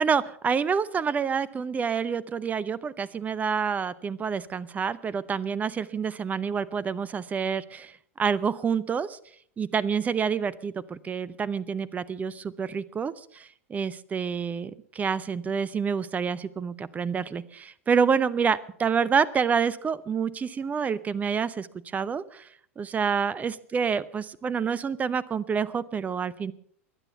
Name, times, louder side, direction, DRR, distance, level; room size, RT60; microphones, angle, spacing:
voice 1, 0.0-7.9 8.2-9.2 9.6-21.7 21.9-22.5 22.8-26.5, right 6 dB, 20° right, 19 dB, 0.8 m, -28 dB
23.0 x 9.1 x 5.7 m, 0.63 s
figure-of-eight pair, 90°, 7 cm